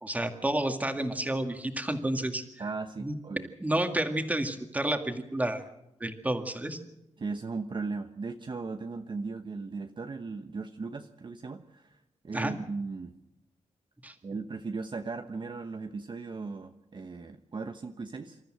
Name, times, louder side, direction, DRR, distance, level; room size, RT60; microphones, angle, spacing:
voice 1, 0.0-2.4 3.0-3.1 3.6-5.6 6.0-6.8 12.3-12.5 14.0-14.1, right 1 dB, 10° right, 6 dB, 2.1 m, -30 dB
voice 2, 2.6-3.5 7.2-12.0 12.2-13.1 14.2-18.4, right 4 dB, 40° right, 6 dB, 1.0 m, -37 dB
27.0 x 13.5 x 7.7 m, 0.91 s
wide cardioid pair, 120°, 12 cm